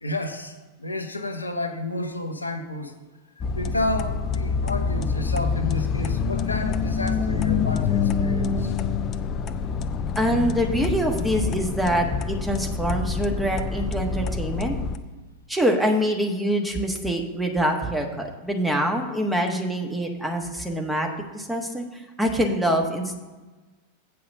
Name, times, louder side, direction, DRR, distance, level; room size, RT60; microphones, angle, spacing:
voice 1, 0.0-3.0 3.4-8.7 10.8-10.9, left 1 dB, 80° left, 5 dB, 0.9 m, -31 dB
sound 1, 3.4-15.0, left 5 dB, 30° left, 0.5 m, -26 dB
voice 2, 10.2-14.8 15.5-23.1, equal, 5° right, 2 dB, 1.4 m, -25 dB
8.4 x 5.6 x 6.6 m, 1.2 s
figure-of-eight pair, 90°, 0 cm